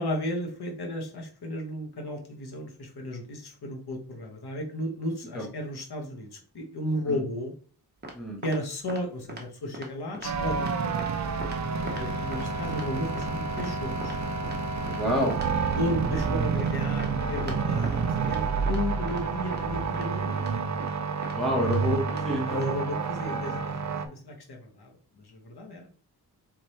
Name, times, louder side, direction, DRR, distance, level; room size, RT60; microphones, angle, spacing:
voice 1, 0.0-7.5 8.4-11.4 11.8-14.2 15.7-20.5 22.5-25.9, left 1 dB, 75° left, 1 dB, 1.3 m, -34 dB
sound 1, 8.0-8.1 8.4-8.6 8.9-9.0 9.3-9.4 9.7-9.9 10.1-10.3 10.6-10.7 11.0-11.1 11.4-11.6 11.9-12.0 12.3-12.4 12.7-12.9 13.2-13.3 13.6-13.7 14.0-14.1 14.4-14.6 14.9-15.0 15.3-15.5 15.7-15.8 16.1-16.3 16.6-16.7 17.0-17.1 17.4-17.6 17.8-18.0 18.2-18.4 18.7-18.8 19.1-19.2 19.5-19.6 19.9-20.0 20.4-20.5 20.8-20.9 21.2-21.3 21.6-21.8 22.1-22.2 22.5-22.7, right 1 dB, 25° right, 1.0 m, -40 dB
sound 2, 10.2-24.1, right 5 dB, 45° right, 0.6 m, -29 dB
voice 2, 14.9-15.3 21.3-22.6, left 1 dB, ahead, -2 dB, 1.3 m, -28 dB
4.4 x 3.7 x 3.2 m, 0.40 s
wide cardioid pair, 135°, 39 cm